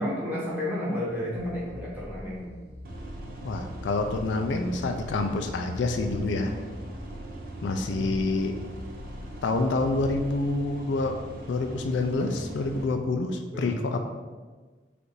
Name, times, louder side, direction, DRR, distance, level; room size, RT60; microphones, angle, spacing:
voice 1, 0.0-2.5 7.9-8.1 13.5-13.7, left 1 dB, 10° right, -8 dB, 0.9 m, -31 dB
sound 1, 1.3-10.5, equal, 15° left, 0.6 m, -44 dB
sound 2, 2.8-12.9, right 1 dB, 50° right, 0.5 m, -41 dB
voice 2, 3.4-6.5 7.6-8.5 9.4-11.2 11.5-14.0, left 3 dB, 75° left, 5 dB, 0.4 m, -27 dB
5.1 x 2.5 x 3.1 m, 1.4 s
head